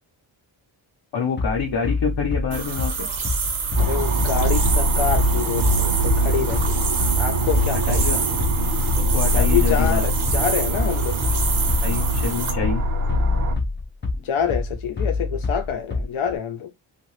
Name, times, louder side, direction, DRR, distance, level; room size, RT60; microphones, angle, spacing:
voice 1, 1.1-3.1 7.9-8.2 9.1-10.0 11.8-12.8, left 6 dB, 55° left, 0.8 m, -26 dB
Bass drum, 1.4-16.4, left 3 dB, 25° left, 0.5 m, -27 dB
sound 1, 2.5-12.5, right 5 dB, 70° right, 1.0 m, -28 dB
sound 2, 3.7-13.5, right 1 dB, 40° right, 0.6 m, -23 dB
voice 2, 3.8-8.4 9.3-11.2 14.2-16.7, left 8 dB, 85° left, 0.8 m, -27 dB
2.7 x 2.5 x 3.1 m
wide cardioid pair, 160°, 48 cm